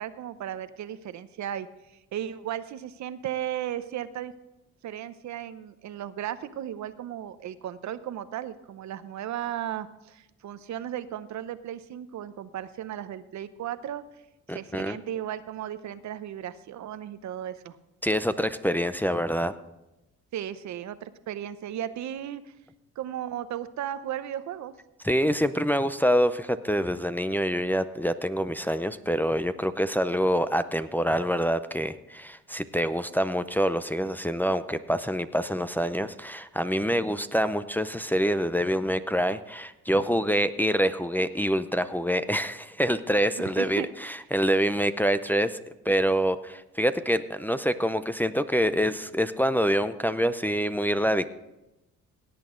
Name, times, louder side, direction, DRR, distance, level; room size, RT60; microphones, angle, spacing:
voice 1, 0.0-1.7 2.1-4.3 4.8-14.0 14.5-17.8 20.3-22.5 23.0-24.7 43.4-43.9, right 11 dB, 70° right, 13 dB, 0.8 m, -35 dB
voice 2, 14.5-15.0 18.0-19.5 25.0-45.6 45.8-51.3, equal, 5° left, 10 dB, 0.5 m, -26 dB
17.0 x 8.3 x 3.8 m, 0.94 s
cardioid pair, 90°, 30 cm